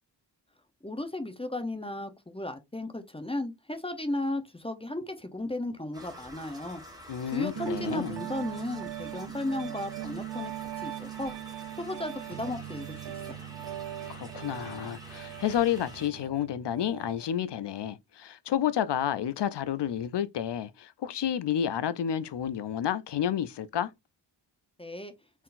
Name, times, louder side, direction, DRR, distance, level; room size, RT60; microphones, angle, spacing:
voice 1, 0.8-6.8 7.2-11.3 11.8-13.5 24.8-25.1, left 1 dB, 15° left, 0.6 m, -35 dB
sound 1, 5.9-16.1, equal, 10° right, 1.5 m, -49 dB
voice 2, 7.1-8.2 14.1-23.9, left 10 dB, 65° left, 0.5 m, -30 dB
Piano, 7.6-17.3, right 13 dB, 70° right, 0.6 m, -40 dB
4.5 x 3.7 x 2.5 m
wide cardioid pair, 125°, 45 cm